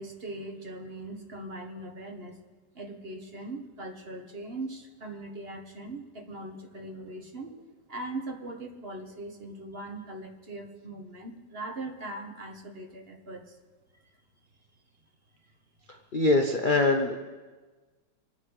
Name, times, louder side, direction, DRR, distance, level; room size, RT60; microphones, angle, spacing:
voice 1, 0.0-2.4 2.8-7.6 7.9-13.6, right 2 dB, 30° right, 2 dB, 1.7 m, -40 dB
voice 2, 16.1-17.2, left 2 dB, 55° left, 3 dB, 0.5 m, -23 dB
25.5 x 9.6 x 4.9 m, 1.3 s
omnidirectional pair, 2.1 m